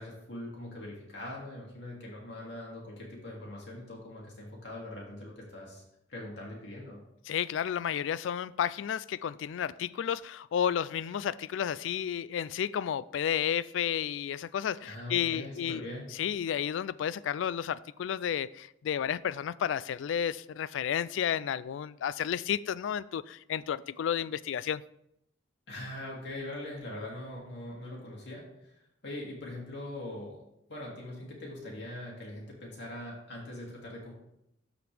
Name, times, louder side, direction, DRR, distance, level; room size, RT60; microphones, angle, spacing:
voice 1, 0.0-5.8 6.1-7.0 14.8-16.1 25.7-28.7 29.0-30.4 30.7-34.2, left 1 dB, 60° left, -3 dB, 2.5 m, -42 dB
voice 2, 7.3-15.8 16.1-24.8, left 9 dB, 75° left, 19 dB, 0.3 m, -32 dB
13.0 x 5.0 x 3.3 m, 0.79 s
head